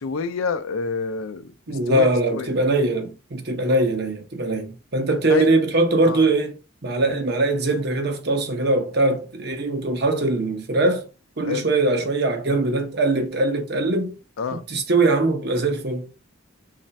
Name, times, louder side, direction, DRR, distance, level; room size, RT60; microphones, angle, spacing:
voice 1, 0.0-2.5 5.3-5.5 6.1-6.2 7.0-7.2 11.5-11.7 14.4-14.6, left 5 dB, 85° left, 0.5 m, -28 dB
voice 2, 1.7-6.6 6.8-11.1 11.4-14.2 14.5-16.1, right 2 dB, 50° right, 0.7 m, -21 dB
3.2 x 2.5 x 4.0 m
head